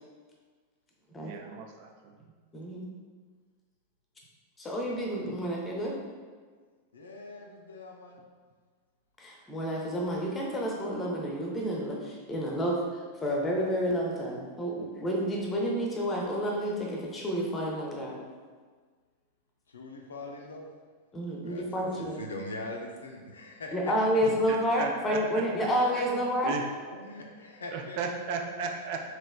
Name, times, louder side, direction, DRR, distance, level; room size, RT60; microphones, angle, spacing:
voice 1, 1.2-1.9 24.5-25.4 25.9-26.1 26.4-26.6 27.7-29.0, right 5 dB, 50° right, 3 dB, 0.4 m, -35 dB
voice 2, 2.5-2.8 4.6-6.0 9.2-12.8 13.2-18.2 21.1-22.2 23.7-26.6, equal, 15° left, -1 dB, 0.7 m, -30 dB
voice 3, 6.9-8.2 19.7-20.6 21.4-24.0 25.0-26.5 26.9-28.0, left 2 dB, 70° left, 1 dB, 0.4 m, -43 dB
4.0 x 3.1 x 2.2 m, 1.5 s
figure-of-eight pair, 90°, 0 cm